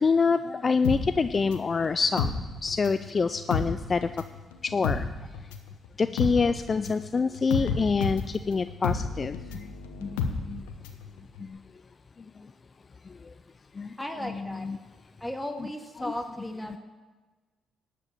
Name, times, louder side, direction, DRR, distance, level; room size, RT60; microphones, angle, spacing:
voice 1, 0.0-2.3 2.6-4.0 4.6-5.1 6.0-9.4 10.0-10.6 13.8-13.9 14.2-14.8 16.7-16.8, left 4 dB, 40° left, 11 dB, 0.4 m, -26 dB
sound 1, 0.8-3.1 3.4-11.1 11.4-11.5, left 5 dB, 85° left, 0.8 m, -31 dB
voice 2, 14.0-14.7 15.2-16.8, left 1 dB, 5° left, 4 dB, 1.8 m, -35 dB
12.0 x 5.2 x 8.4 m, 1.3 s
hypercardioid pair, 45°, 0 cm